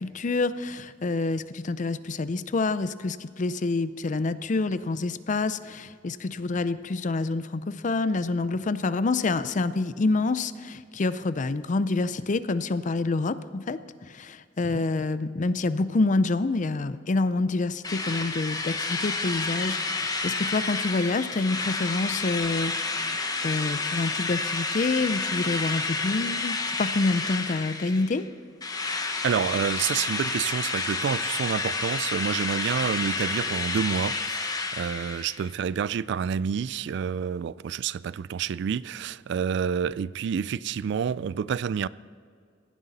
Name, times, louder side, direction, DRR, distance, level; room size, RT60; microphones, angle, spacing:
voice 1, 0.0-13.8 14.1-22.7 23.4-28.2, left 3 dB, 45° left, 0.5 m, -27 dB
Drill, 17.8-28.2 28.6-35.5, left 3 dB, 20° left, 1.0 m, -30 dB
voice 2, 29.2-41.9, right 7 dB, 65° right, 0.3 m, -28 dB
16.5 x 11.0 x 4.1 m
head